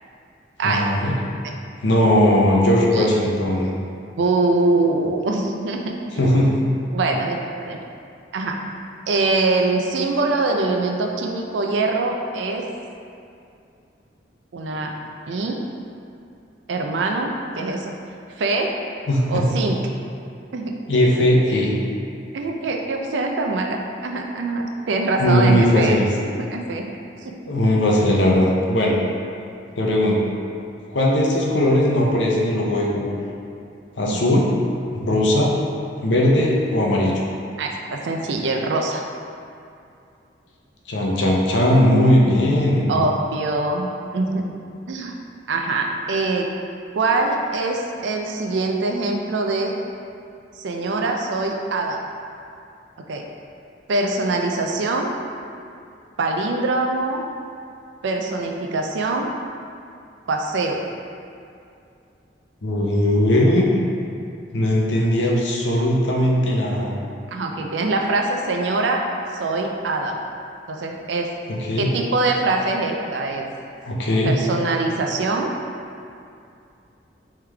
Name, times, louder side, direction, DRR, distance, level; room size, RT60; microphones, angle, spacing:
voice 1, 0.6-1.2 1.8-3.7 6.2-6.7 19.1-19.4 20.9-21.7 25.2-26.1 27.5-29.0 29.8-30.2 30.9-33.1 34.0-34.5 34.9-35.5 36.0-37.1 40.9-42.9 62.6-63.6 64.5-67.0 71.7-71.9 73.8-74.4, left 1 dB, 80° left, -2 dB, 0.6 m, -18 dB
voice 2, 4.2-6.4 6.9-7.8 8.3-8.6 9.1-12.7 14.5-14.9 15.3-15.6 16.7-18.0 18.4-18.8 19.3-19.8 20.5-20.8 22.3-26.0 26.4-26.9 27.2-27.4 34.0-34.2 37.6-39.0 42.9-44.5 44.9-45.2 45.5-46.5 46.9-49.8 50.6-52.0 53.1-53.3 53.9-55.1 56.2-57.2 58.0-59.3 60.3-60.8 67.3-69.1 69.3-70.2 70.7-71.3 71.8-73.5 74.2-75.5, right 3 dB, 80° right, 2 dB, 0.4 m, -23 dB
3.6 x 3.2 x 3.3 m, 2.5 s
head